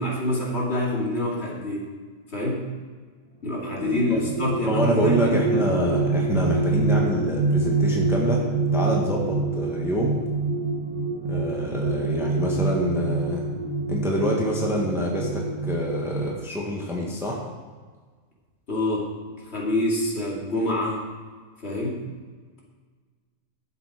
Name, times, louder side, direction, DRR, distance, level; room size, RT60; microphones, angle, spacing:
voice 1, 0.0-2.0 2.3-2.6 3.4-5.6 18.7-19.1 19.4-21.0 21.6-22.0, left 1 dB, 50° left, -3 dB, 2.8 m, -26 dB
sound 1, 3.5-16.3, right 3 dB, 85° right, 1.7 m, -26 dB
voice 2, 4.7-10.2 11.2-13.5 13.9-17.4, equal, ahead, -2 dB, 1.5 m, -26 dB
11.5 x 7.2 x 5.0 m, 1.5 s
omnidirectional pair, 1.4 m